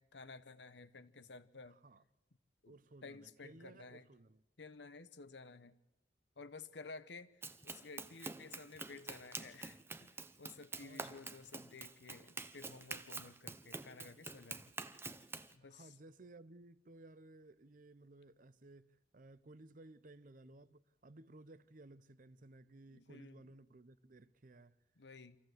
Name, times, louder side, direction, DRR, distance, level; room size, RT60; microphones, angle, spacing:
voice 1, 0.0-1.8 2.6-2.7 3.0-4.1 4.6-5.8 6.4-10.1 10.4-14.7 15.5-15.9 22.9-23.4 25.0-25.4, left 4 dB, 85° left, 1.0 m, -54 dB
voice 2, 1.7-2.0 2.6-4.4 10.8-11.2 15.6-24.8, right 2 dB, 50° right, 0.7 m, -58 dB
Run, 7.4-15.5, right 3 dB, 15° right, 0.7 m, -47 dB
26.0 x 14.5 x 8.0 m
head